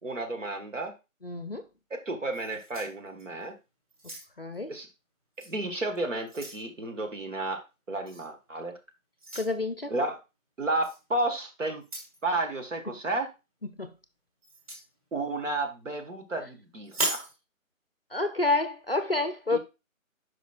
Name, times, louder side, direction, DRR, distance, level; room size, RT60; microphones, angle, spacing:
voice 1, 0.0-0.9 1.9-3.5 4.7-4.9 5.4-7.6 7.9-8.7 9.9-10.2 10.6-11.8 12.2-13.3 15.1-17.3 19.5-19.6, right 2 dB, 65° right, 1.6 m, -32 dB
voice 2, 1.2-1.6 4.4-4.7 9.3-9.9 13.8-13.9 18.1-19.6, left 2 dB, 45° left, 0.5 m, -28 dB
sound 1, 2.3-3.5 3.9-4.6 5.4-5.5 6.0-6.7 8.1-8.3 9.2-9.5 10.8-11.0 11.8-12.2 14.4-14.9 16.8-17.3, right 2 dB, 25° right, 2.4 m, -36 dB
10.5 x 5.2 x 2.4 m
figure-of-eight pair, 175°, 41 cm